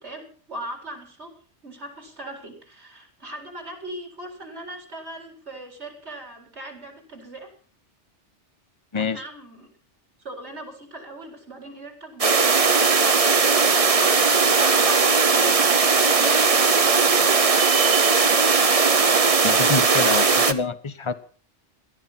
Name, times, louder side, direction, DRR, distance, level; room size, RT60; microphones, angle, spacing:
voice 1, 0.0-7.5 9.0-9.7 10.2-18.4 20.1-20.6, right 1 dB, 70° right, 4 dB, 4.5 m, -40 dB
voice 2, 8.9-9.2 19.4-21.1, left 5 dB, 25° left, 13 dB, 1.1 m, -26 dB
sound 1, 12.2-20.5, right 4 dB, 35° right, 0.9 m, -18 dB
17.5 x 13.0 x 5.8 m, 0.43 s
omnidirectional pair, 1.2 m